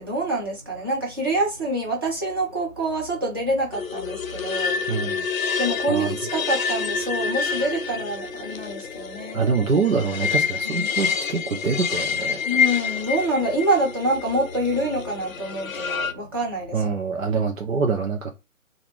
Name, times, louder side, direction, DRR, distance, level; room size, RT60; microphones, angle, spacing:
voice 1, 0.0-4.8 5.6-9.4 10.6-10.9 12.4-16.8 17.3-17.4, right 1 dB, 15° right, 0.6 m, -26 dB
sound 1, 3.7-16.1, left 6 dB, 75° left, 0.5 m, -28 dB
voice 2, 4.9-5.3 5.9-6.2 9.3-12.4 16.7-18.3, right 5 dB, 70° right, 0.7 m, -25 dB
2.4 x 2.3 x 3.3 m
figure-of-eight pair, 145°, 41 cm